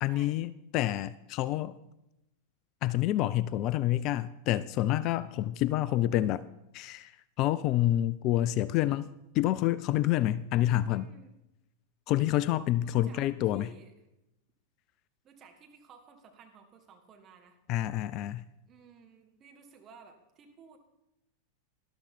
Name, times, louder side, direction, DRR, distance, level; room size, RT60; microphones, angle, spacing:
voice 1, 0.0-1.8 2.8-6.4 6.7-7.1 7.4-9.1 9.3-11.1 12.1-13.7 17.7-18.5, left 14 dB, 40° left, 0.3 m, -28 dB
voice 2, 10.9-11.3 12.8-13.9 15.2-17.6 18.7-20.8, right 6 dB, 30° right, 1.7 m, -55 dB
13.0 x 11.5 x 4.4 m
figure-of-eight pair, 90°, 0 cm